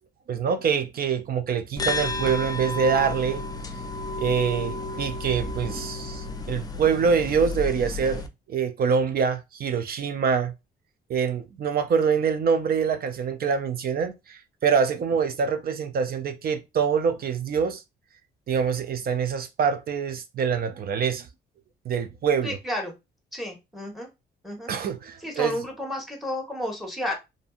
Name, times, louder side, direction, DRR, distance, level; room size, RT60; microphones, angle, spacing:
voice 1, 0.3-3.4 4.2-10.5 11.1-17.8 18.5-21.3 21.9-22.6 24.7-25.6, right 6 dB, 50° right, 0.4 m, -25 dB
sound 1, 1.8-8.3, left 3 dB, 20° left, 0.4 m, -32 dB
voice 2, 22.4-22.9 23.3-24.1 24.4-24.7 25.2-27.1, left 1 dB, ahead, 1.0 m, -31 dB
2.6 x 2.5 x 2.3 m
cardioid pair, 90°, 20 cm